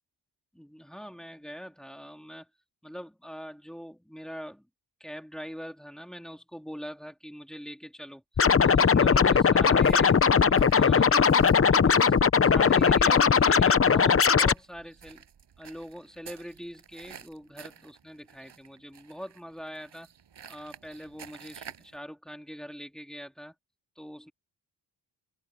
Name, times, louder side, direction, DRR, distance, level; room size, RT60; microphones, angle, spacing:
voice 1, 0.5-2.5 2.8-4.7 5.0-8.2 8.6-11.3 11.7-12.1 12.4-15.2 15.6-20.1 20.5-23.5 24.0-24.3, equal, ahead, 3.1 m, -42 dB
Scratching (performance technique), 8.4-14.5, left 6 dB, 30° left, 0.8 m, -20 dB
sound 1, 9.8-22.0, right 7 dB, 75° right, 6.4 m, -51 dB
open air
wide cardioid pair, 100°, 43 cm